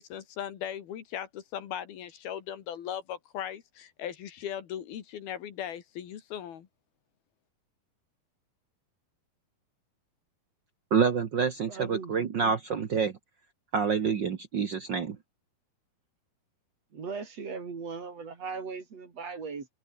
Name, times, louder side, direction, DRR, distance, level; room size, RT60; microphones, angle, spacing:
voice 1, 0.0-6.7, left 10 dB, 75° left, 4.0 m, -38 dB
voice 2, 10.9-13.1 13.7-15.2, right 6 dB, 90° right, 0.9 m, -27 dB
voice 3, 11.7-12.3 16.9-19.7, right 5 dB, 45° right, 4.3 m, -38 dB
open air
omnidirectional pair, 4.4 m